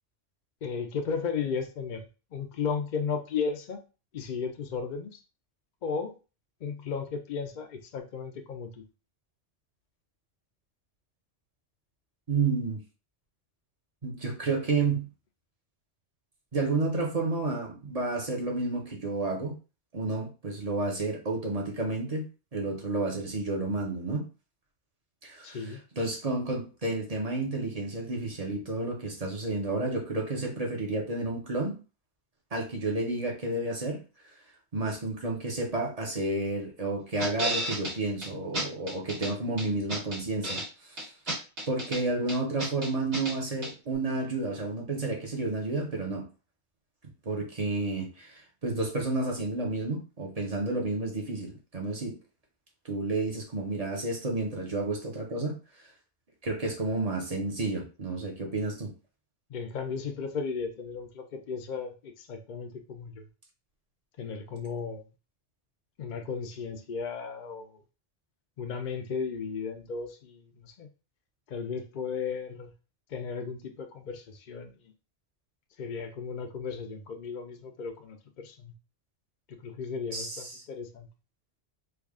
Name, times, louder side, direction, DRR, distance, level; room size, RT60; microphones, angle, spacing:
voice 1, 0.6-3.8 4.1-5.2 5.8-6.1 6.6-8.8 25.4-25.8 59.5-63.3 64.2-65.0 66.0-67.7 68.6-70.9 71.5-72.7 73.1-74.8 75.8-78.7 79.5-81.1, left 5 dB, 55° left, 0.6 m, -35 dB
voice 2, 12.3-12.8 14.0-15.1 16.5-19.5 19.9-22.2 22.5-24.2 25.2-25.6 26.0-31.8 32.5-34.0 34.7-40.6 40.9-41.1 41.7-46.2 47.2-52.2 52.9-55.6 56.4-58.9 80.1-80.5, right 3 dB, 35° right, 0.9 m, -31 dB
sound 1, 37.2-37.9 38.2-38.3 38.5-39.3 39.6-40.7 41.0-42.0 42.3-43.3 43.6-43.7, right 1 dB, 85° right, 1.7 m, -32 dB
3.4 x 2.4 x 3.6 m
omnidirectional pair, 1.1 m